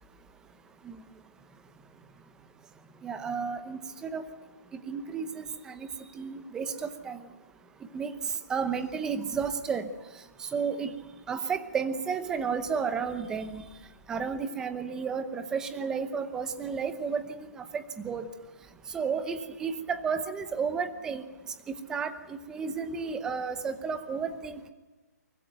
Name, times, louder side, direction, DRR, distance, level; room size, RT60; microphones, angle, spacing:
voice 1, 3.0-4.2 4.9-5.9 6.2-7.2 7.9-8.1 8.5-9.9 10.5-10.9 11.3-13.6 14.1-18.3 18.9-21.2 21.9-24.7, right 6 dB, 5° right, 10 dB, 0.8 m, -32 dB
24.0 x 15.5 x 9.2 m, 1.2 s
hypercardioid pair, 170°, 9 cm